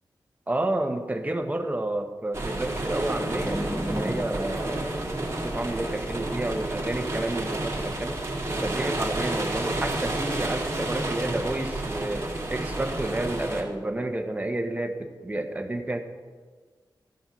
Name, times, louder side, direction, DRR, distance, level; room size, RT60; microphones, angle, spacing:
voice 1, 0.5-8.2 8.5-16.0, right 1 dB, 20° right, 5 dB, 1.1 m, -30 dB
sound 1, 2.3-13.6, right 2 dB, 35° right, 2.0 m, -30 dB
sound 2, 3.2-7.9, equal, 5° left, 1.0 m, -37 dB
14.0 x 5.4 x 5.9 m, 1.5 s
wide cardioid pair, 80°, 8 cm